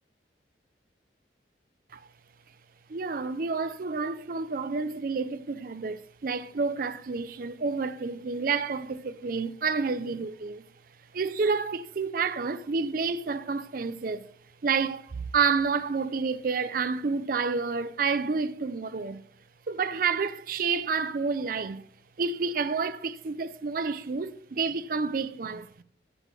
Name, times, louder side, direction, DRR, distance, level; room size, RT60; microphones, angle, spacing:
voice 1, 2.9-10.6 11.1-14.3 14.6-19.2 19.7-21.8 22.2-25.8, right 5 dB, 50° right, 0.4 m, -29 dB
14.0 x 7.6 x 3.2 m
head